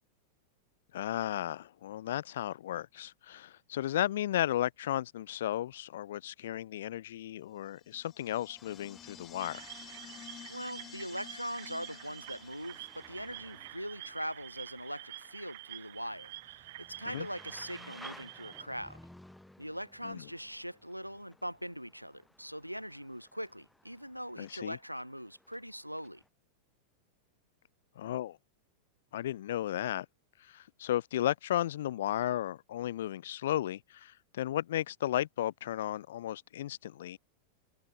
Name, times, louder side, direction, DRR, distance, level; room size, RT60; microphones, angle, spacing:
voice 1, 0.9-9.7 17.0-17.3 20.0-20.2 24.4-24.8 28.0-28.4 29.1-30.1 30.4-37.2, left 12 dB, 60° left, 0.4 m, -34 dB
sound 1, 7.8-13.2, left 10 dB, 30° left, 7.3 m, -52 dB
sound 2, 8.6-26.3, left 1 dB, 5° left, 7.5 m, -58 dB
sound 3, 9.4-18.6, right 17 dB, 55° right, 1.3 m, -48 dB
voice 2, 10.5-19.0 19.6-26.2, equal, 90° right, 1.0 m, -41 dB
figure-of-eight pair, 90°, 0 cm